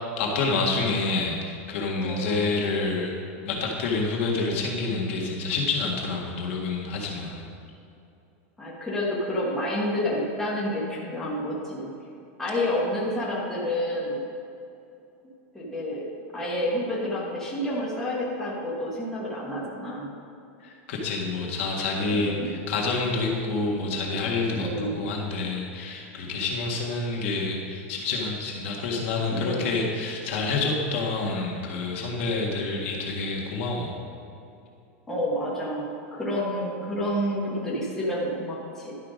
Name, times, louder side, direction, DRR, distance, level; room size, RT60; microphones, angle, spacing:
voice 1, 0.2-3.1 3.4-7.4 20.6-33.9, left 3 dB, 60° left, -1 dB, 1.8 m, -28 dB
voice 2, 2.0-2.3 8.6-11.9 12.4-14.2 15.5-16.0 16.3-20.1 22.1-22.5 24.6-25.0 29.3-29.7 35.1-38.9, left 1 dB, 5° left, -6 dB, 1.4 m, -29 dB
11.5 x 5.8 x 5.1 m, 2.7 s
supercardioid pair, 165°, 7 cm